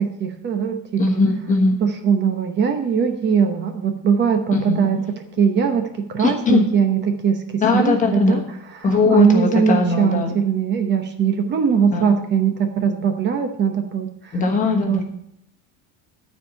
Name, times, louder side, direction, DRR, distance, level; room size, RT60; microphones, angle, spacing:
voice 1, 0.0-1.2 1.8-5.0 5.4-8.4 8.9-14.4 14.9-15.0, right 6 dB, 30° right, 5 dB, 0.9 m, -20 dB
voice 2, 1.0-1.8 4.5-4.9 6.2-6.6 7.6-8.4 8.8-10.3 11.9-12.1 14.3-15.0, left 3 dB, 20° left, 2 dB, 1.3 m, -19 dB
12.5 x 4.6 x 6.9 m, 0.75 s
cardioid pair, 180°, 35 cm